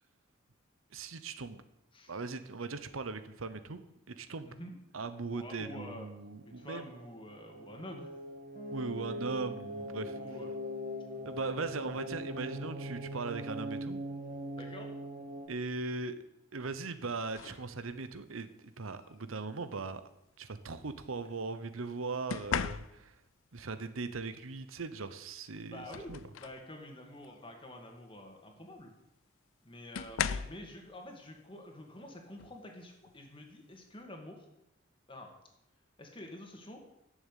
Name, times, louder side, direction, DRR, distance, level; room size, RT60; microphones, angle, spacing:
voice 1, 0.9-1.6 2.1-3.8 4.2-4.5 4.9-6.9 8.7-10.2 11.2-14.0 15.5-16.2 16.5-20.0 20.4-23.2 23.5-26.2, right 3 dB, 85° right, 12 dB, 0.9 m, -39 dB
voice 2, 5.3-6.1 6.5-8.1 10.2-10.5 14.6-14.9 25.6-28.9 29.6-34.5 35.1-35.3 36.0-36.8, left 1 dB, 25° left, 2 dB, 2.1 m, -48 dB
sound 1, 6.1-15.5, equal, 45° right, 1.4 m, -41 dB
Piano, 8.6-14.3, left 2 dB, 45° left, 1.9 m, -53 dB
sound 2, 17.4-17.7 19.0-19.2 22.3-23.3 25.0-25.1 25.6-26.7 27.1-27.4 28.8-28.9 29.9-30.7 32.4-32.6 33.1-33.4, left 7 dB, 80° left, 0.5 m, -37 dB
11.0 x 7.2 x 8.4 m, 0.86 s
head